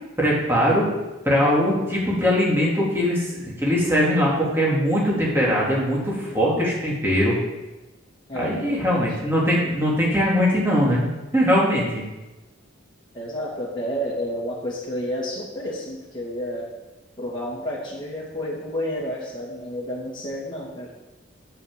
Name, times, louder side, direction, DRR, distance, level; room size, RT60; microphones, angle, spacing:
voice 1, 0.2-0.9 1.2-7.4 8.3-11.0 11.3-12.0, equal, 10° right, -5 dB, 2.9 m, -21 dB
voice 2, 6.3-6.6 8.3-9.0 13.1-16.7 17.2-20.9, equal, 20° left, -5 dB, 2.2 m, -30 dB
7.6 x 7.6 x 7.6 m, 1.1 s
head